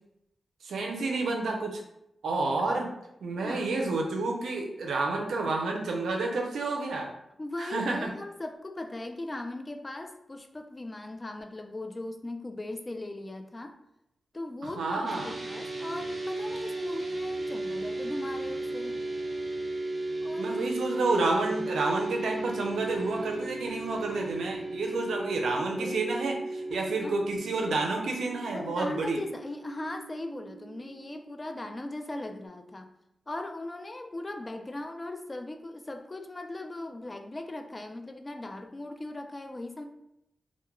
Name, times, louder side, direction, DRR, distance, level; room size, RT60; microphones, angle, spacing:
voice 1, 0.6-1.8 2.2-2.9 3.2-7.1 7.6-8.1 14.8-15.3 20.3-29.2, right 3 dB, 90° right, 1 dB, 0.4 m, -30 dB
voice 2, 3.4-3.8 7.4-13.8 14.3-19.0 20.2-20.7 25.8-26.0 26.7-27.2 28.5-32.9 33.3-39.9, left 2 dB, 30° left, 6 dB, 0.3 m, -39 dB
sound 1, 15.1-32.5, right 2 dB, 35° right, 0.5 m, -36 dB
2.2 x 2.1 x 3.0 m, 0.82 s
cardioid pair, 60°, 0 cm